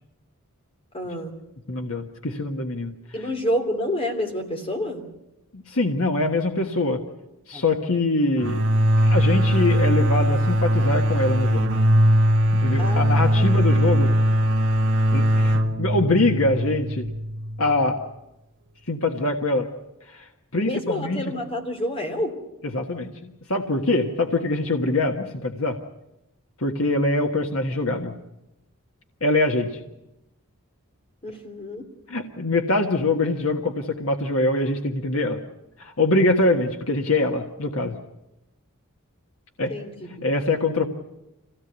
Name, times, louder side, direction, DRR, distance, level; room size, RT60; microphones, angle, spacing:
voice 1, 0.9-1.3 3.1-5.0 7.5-7.6 12.8-13.7 20.6-22.4 31.2-31.9 39.7-40.3, equal, 25° left, 4 dB, 3.1 m, -29 dB
voice 2, 1.7-2.9 5.5-7.0 7.5-8.6 9.0-11.7 12.5-14.1 15.1-17.1 17.6-18.0 18.9-19.7 20.1-21.2 22.7-25.8 26.6-28.1 29.2-29.8 32.1-35.4 35.8-37.9 39.6-39.7 40.2-40.9, left 2 dB, 70° left, 3 dB, 1.6 m, -23 dB
sound 1, 8.4-17.9, equal, 60° right, 1.6 m, -20 dB
25.5 x 17.0 x 8.2 m, 0.92 s
head